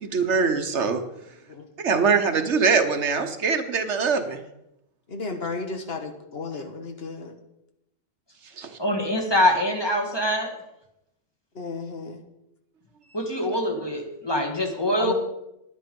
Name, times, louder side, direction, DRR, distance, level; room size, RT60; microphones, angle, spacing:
voice 1, 0.0-1.0 1.8-4.4 8.6-8.8 13.4-13.8, right 5 dB, 65° right, 8 dB, 1.3 m, -23 dB
voice 2, 5.1-7.4 11.5-12.2 14.9-15.1, left 3 dB, 55° left, 5 dB, 1.3 m, -33 dB
voice 3, 8.8-10.5 13.1-15.1, left 1 dB, 20° left, 2 dB, 1.7 m, -24 dB
10.5 x 10.0 x 5.3 m, 0.85 s
omnidirectional pair, 1.3 m